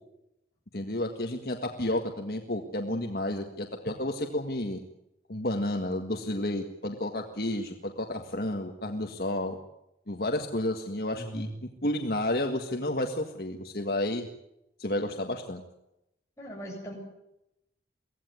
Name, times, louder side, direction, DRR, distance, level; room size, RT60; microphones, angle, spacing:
voice 1, 0.7-4.8 5.3-9.6 10.1-11.5 11.8-14.3 14.8-15.6, left 1 dB, 55° left, 3 dB, 1.8 m, -31 dB
voice 2, 11.1-11.5 16.4-17.0, right 1 dB, 15° left, -2 dB, 7.9 m, -39 dB
24.0 x 17.0 x 9.5 m, 0.86 s
head